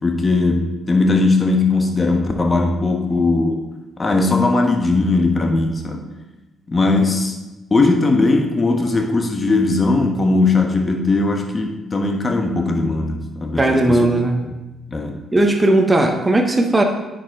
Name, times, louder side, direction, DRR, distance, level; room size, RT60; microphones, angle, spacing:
voice 1, 0.0-3.6 4.0-6.0 6.7-7.4 7.7-14.0 14.9-15.2, left 3 dB, 35° left, 3 dB, 1.2 m, -18 dB
voice 2, 13.6-14.4 15.3-16.8, right 2 dB, 20° right, 3 dB, 1.1 m, -16 dB
9.4 x 5.1 x 3.8 m, 1.0 s
hypercardioid pair, 45°, 0 cm